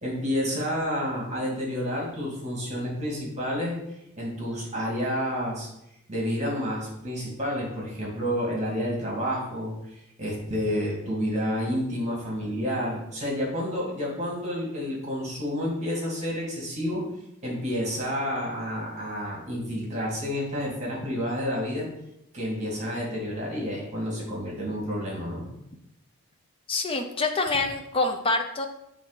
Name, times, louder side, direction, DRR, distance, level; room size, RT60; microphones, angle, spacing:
voice 1, 0.0-3.8 4.2-5.7 6.1-17.1 17.4-21.9 22.3-25.4, equal, 30° right, -3 dB, 2.4 m, -30 dB
voice 2, 26.7-28.7, left 3 dB, 25° left, 4 dB, 0.7 m, -26 dB
7.7 x 4.1 x 5.2 m, 0.84 s
head